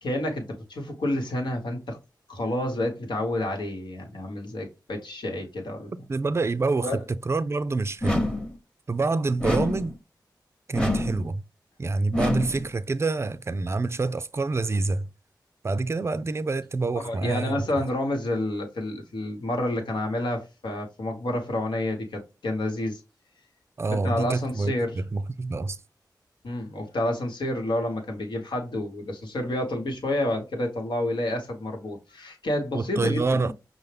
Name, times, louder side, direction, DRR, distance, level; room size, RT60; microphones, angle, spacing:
voice 1, 0.0-2.0 2.3-5.9 6.8-7.0 17.0-23.0 23.8-25.0 26.4-33.5, left 1 dB, 85° left, 1.1 m, -29 dB
voice 2, 6.1-7.0 7.3-8.3 8.9-9.9 10.7-11.4 11.8-15.1 15.6-17.8 23.8-25.8 32.7-33.5, right 3 dB, 35° right, 0.4 m, -27 dB
sound 1, 8.0-8.6 9.4-10.0 10.7-11.3 12.1-12.7, left 1 dB, 10° left, 0.9 m, -26 dB
5.5 x 2.1 x 3.3 m
cardioid pair, 50°, 8 cm